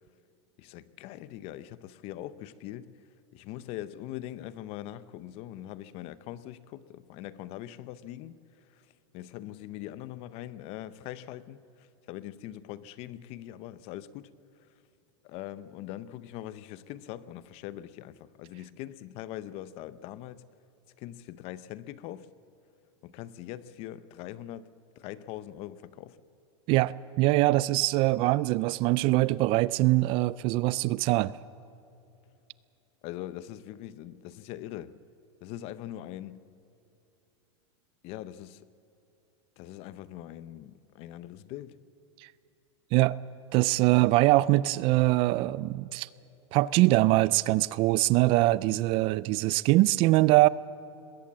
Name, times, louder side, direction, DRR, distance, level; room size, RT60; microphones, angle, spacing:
voice 1, 0.6-2.9 3.3-8.4 8.7-8.8 9.1-14.3 15.2-20.4 21.0-22.3 23.0-24.7 25.0-26.2 33.0-35.0 35.4-36.4 38.0-38.7 39.6-41.8 43.9-44.0, left 13 dB, 40° left, 0.7 m, -42 dB
voice 2, 26.7-31.3 42.9-43.2 43.5-46.1 46.5-50.5, right 19 dB, 35° right, 0.4 m, -23 dB
21.0 x 17.5 x 7.5 m
supercardioid pair, 145°, 15 cm